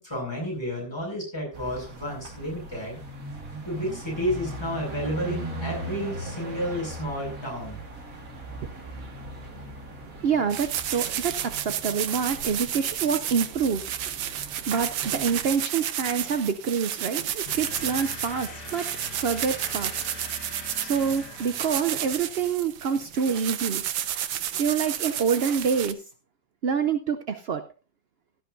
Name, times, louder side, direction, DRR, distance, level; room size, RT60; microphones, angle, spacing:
voice 1, 0.0-3.0 3.6-7.8, equal, 15° left, -3 dB, 6.8 m, -31 dB
sound 1, 1.5-15.5, right 2 dB, 45° right, 2.2 m, -39 dB
voice 2, 8.6-9.2 10.2-13.9 14.7-20.0 20.8-23.8 24.6-26.0 26.6-27.6, right 6 dB, 70° right, 9 dB, 0.5 m, -27 dB
sound 2, 10.5-25.9, right 10 dB, 90° right, 1.6 m, -32 dB
sound 3, 17.5-22.2, left 4 dB, 65° left, 1.9 m, -42 dB
16.5 x 12.5 x 2.6 m, 0.32 s
omnidirectional pair, 2.0 m